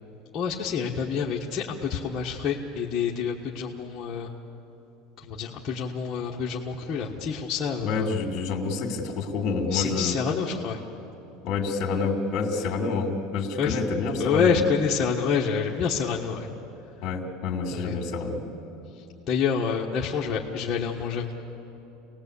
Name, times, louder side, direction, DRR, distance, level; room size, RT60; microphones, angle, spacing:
voice 1, 0.3-4.3 5.2-8.2 9.7-10.8 13.6-13.8 14.2-16.5 17.7-18.0 18.9-21.3, left 6 dB, 25° left, -3 dB, 1.4 m, -27 dB
voice 2, 7.8-10.2 11.4-14.5 17.0-18.4, left 4 dB, 40° left, 4 dB, 2.8 m, -28 dB
28.5 x 19.0 x 8.4 m, 3.0 s
cardioid pair, 160°, 0 cm